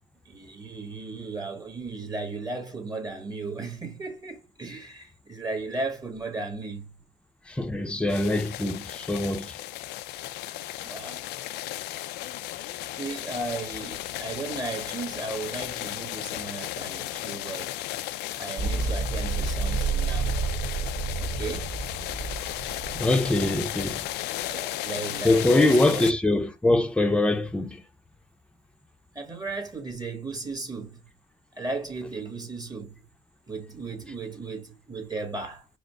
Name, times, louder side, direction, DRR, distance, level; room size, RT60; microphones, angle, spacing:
voice 1, 0.2-6.9 10.8-11.2 13.0-17.7 18.4-20.3 21.2-21.7 24.5-26.1 29.1-31.0 31.5-33.0 33.5-35.7, right 3 dB, 25° right, 1.4 m, -35 dB
voice 2, 7.5-9.5 22.4-22.6 22.9-24.0 25.2-27.8, left 2 dB, 5° left, 0.6 m, -23 dB
sound 1, 8.1-26.1, left 15 dB, 85° left, 0.4 m, -35 dB
sound 2, 18.6-24.0, right 4 dB, 70° right, 1.4 m, -30 dB
5.0 x 2.1 x 4.6 m
cardioid pair, 110°, 17 cm